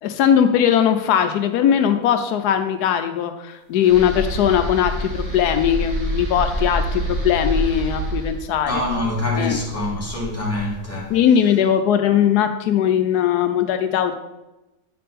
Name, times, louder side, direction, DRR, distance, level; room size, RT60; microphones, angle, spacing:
voice 1, 0.0-8.8 9.4-9.6 11.1-14.1, left 9 dB, 85° left, 1.2 m, -19 dB
sound 1, 3.8-11.0, equal, 80° right, 3.7 m, -27 dB
voice 2, 8.7-11.2, left 2 dB, 10° left, 1.9 m, -25 dB
8.5 x 5.5 x 4.1 m
omnidirectional pair, 1.7 m